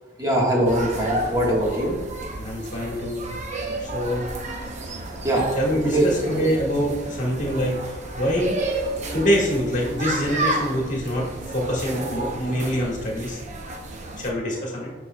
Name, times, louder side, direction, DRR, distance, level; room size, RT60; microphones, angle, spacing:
voice 1, 0.2-1.9 4.6-5.6 5.8-6.1 8.9-9.1, right 1 dB, 20° right, -3 dB, 1.4 m, -23 dB
sound 1, 0.6-14.3, right 2 dB, 40° right, 0.7 m, -31 dB
voice 2, 2.4-3.2 3.8-4.3 5.6-8.6 9.1-13.4 14.2-14.9, equal, 45° left, -3 dB, 1.6 m, -25 dB
7.0 x 6.4 x 2.2 m, 1.2 s
head